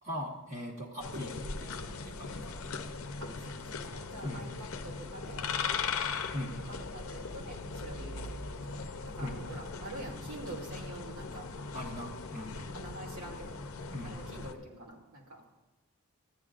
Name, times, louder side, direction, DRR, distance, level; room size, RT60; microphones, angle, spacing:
voice 1, 0.0-2.6 4.2-4.5 6.3-6.6 9.2-9.4 11.7-12.7 13.9-14.2, left 1 dB, 35° right, -2 dB, 1.2 m, -40 dB
sound 1, 1.0-14.5, left 4 dB, 65° left, 0.7 m, -39 dB
voice 2, 3.2-5.5 6.7-11.5 12.7-13.6 14.0-15.4, right 2 dB, 85° right, -3 dB, 2.6 m, -46 dB
14.0 x 10.0 x 2.5 m, 1.2 s
head